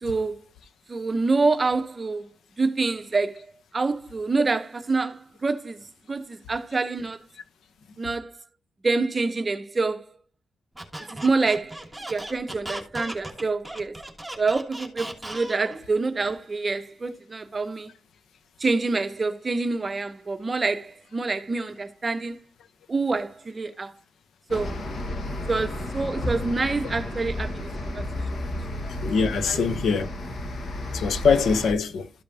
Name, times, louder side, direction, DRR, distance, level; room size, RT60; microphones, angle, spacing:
voice 1, 0.0-0.4 0.9-2.3 2.6-3.5 3.7-5.8 6.1-7.2 8.0-8.4 8.8-10.1 11.1-14.0 14.4-17.9 18.6-22.4 22.9-23.9 24.5-24.7 25.5-28.8 29.5-29.7, right 3 dB, 30° right, 0.7 m, -27 dB
Squeak, 10.7-15.8, right 1 dB, 5° right, 1.5 m, -37 dB
sound 1, 24.5-31.7, left 1 dB, 55° left, 1.5 m, -32 dB
voice 2, 28.9-30.1 30.9-32.1, left 5 dB, 80° left, 0.7 m, -23 dB
13.0 x 5.1 x 2.7 m
cardioid pair, 115°, 0 cm